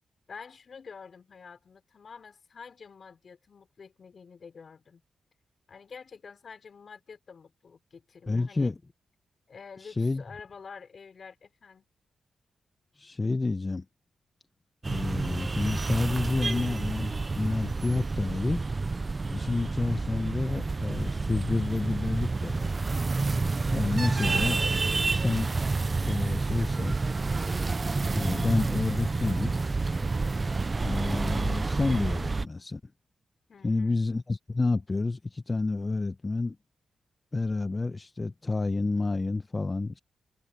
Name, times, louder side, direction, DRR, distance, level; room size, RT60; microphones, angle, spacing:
voice 1, 0.3-5.0 5.7-8.7 9.5-11.9 33.5-33.9, left 5 dB, 60° left, 4.1 m, -48 dB
voice 2, 8.3-8.8 9.8-10.2 13.0-13.8 14.8-18.7 19.3-22.8 23.7-24.6 25.1-25.5 26.0-27.0 28.1-29.5 30.8-32.8 33.6-36.6 37.3-40.0, left 3 dB, 35° left, 1.0 m, -29 dB
sound 1, 14.8-32.5, right 3 dB, 40° right, 0.6 m, -29 dB
supercardioid pair, 50°, 0 cm